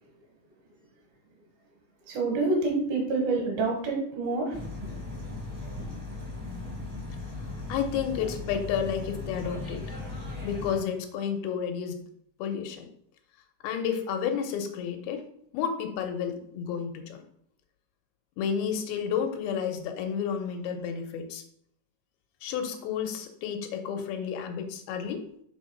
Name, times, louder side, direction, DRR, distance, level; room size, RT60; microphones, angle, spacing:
voice 1, 2.1-4.5, right 3 dB, 75° right, 1 dB, 3.5 m, -27 dB
sound 1, 4.5-10.8, left 2 dB, 15° right, 0.6 m, -37 dB
voice 2, 7.7-9.8 10.4-12.0 12.4-12.9 13.6-15.2 15.5-17.3 18.4-21.4 22.4-25.2, left 7 dB, 90° left, 5 dB, 2.8 m, -31 dB
6.9 x 3.9 x 5.6 m, 0.69 s
omnidirectional pair, 4.3 m